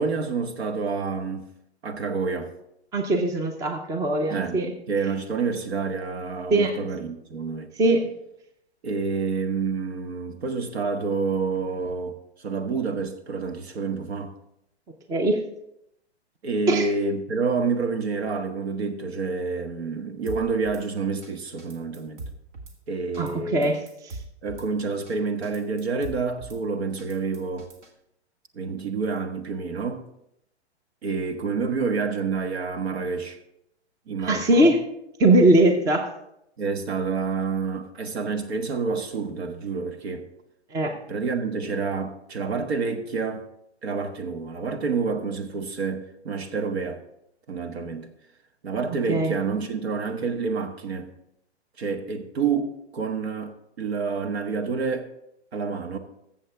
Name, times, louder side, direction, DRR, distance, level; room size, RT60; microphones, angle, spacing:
voice 1, 0.0-1.5 1.8-2.5 4.3-4.6 4.9-7.7 8.8-14.3 16.4-22.3 22.9-23.7 24.4-27.7 28.5-30.1 31.0-33.4 34.1-34.7 36.6-40.3 41.1-43.5 43.8-47.0 47.5-48.1 48.6-51.1 51.8-55.1 55.5-56.0, right 4 dB, 70° right, 1.4 m, -28 dB
voice 2, 2.9-4.7 6.5-6.7 7.8-8.1 15.1-15.4 16.7-16.9 23.2-23.8 24.0-24.2 34.2-34.8 35.2-36.1 40.7-40.9 49.1-49.3, right 1 dB, 10° right, 0.6 m, -20 dB
Drum kit / Snare drum, 20.3-20.8 21.2-21.3 21.6-22.8 23.1-23.4 23.6-24.7 25.1-25.2 25.4-26.6 27.0-27.9, right 2 dB, 45° right, 1.5 m, -41 dB
14.0 x 7.3 x 3.4 m
hypercardioid pair, 130°, 33 cm